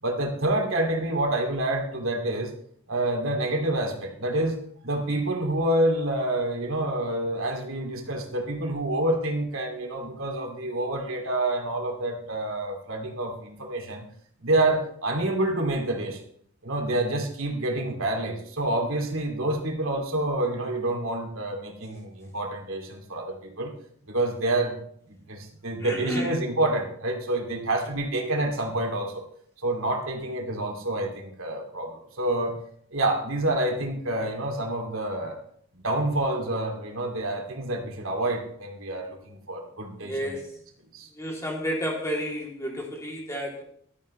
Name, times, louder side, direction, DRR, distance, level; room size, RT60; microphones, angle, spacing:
voice 1, 0.0-2.5 2.9-14.0 14.4-16.2 16.6-23.8 24.1-24.8 25.1-29.2 29.6-32.6 32.9-35.4 35.7-40.4 40.9-41.1, right 1 dB, 75° right, 2 dB, 2.6 m, -28 dB
voice 2, 25.8-26.3 40.0-40.5 41.2-43.6, equal, 15° left, -1 dB, 3.0 m, -31 dB
15.0 x 12.5 x 3.2 m, 0.63 s
head